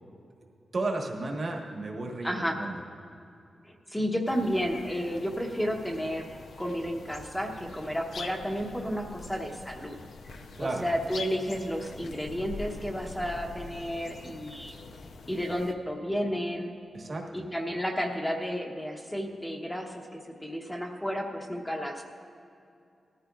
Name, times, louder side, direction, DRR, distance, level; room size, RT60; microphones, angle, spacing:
voice 1, 0.7-2.8 10.6-10.9 16.9-17.4, right 2 dB, 40° right, 0 dB, 1.4 m, -33 dB
voice 2, 2.2-2.6 3.9-6.3 6.6-10.0 10.6-14.7 15.3-16.7 17.3-22.0, equal, 5° left, 1 dB, 1.0 m, -32 dB
sound 1, 4.2-15.7, left 3 dB, 85° left, 0.7 m, -44 dB
19.0 x 14.0 x 2.4 m, 2.5 s
wide cardioid pair, 160°, 0 cm